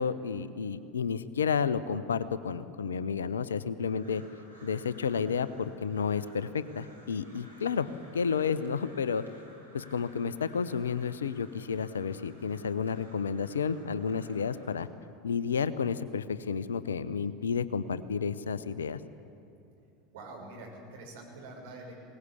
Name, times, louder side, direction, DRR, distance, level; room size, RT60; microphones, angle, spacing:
voice 1, 0.0-4.2 4.6-9.2 9.7-14.9 15.2-19.0, left 6 dB, 70° left, 15 dB, 0.7 m, -31 dB
Crow, 3.8-14.8, equal, 90° right, 3.5 m, -56 dB
voice 2, 20.1-21.9, right 2 dB, 60° right, -1 dB, 6.2 m, -45 dB
21.5 x 19.0 x 8.5 m, 2.6 s
figure-of-eight pair, 75°, 0 cm